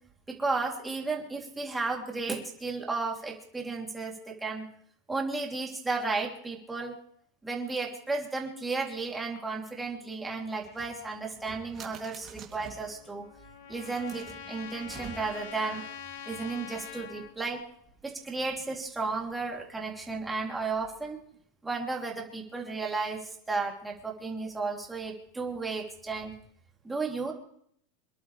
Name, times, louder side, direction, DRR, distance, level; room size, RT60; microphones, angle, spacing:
voice 1, 0.3-4.7 5.1-6.9 7.4-13.2 13.7-15.8 16.2-17.6 18.0-21.2 21.6-26.3 26.8-27.3, right 3 dB, 10° right, -1 dB, 3.3 m, -33 dB
sound 1, 10.6-13.0 13.6-15.6, right 7 dB, 25° right, 3.0 m, -48 dB
Trumpet, 12.8-17.3, left 8 dB, 70° left, 1.4 m, -44 dB
27.5 x 11.5 x 3.4 m, 0.66 s
supercardioid pair, 150°, 0 cm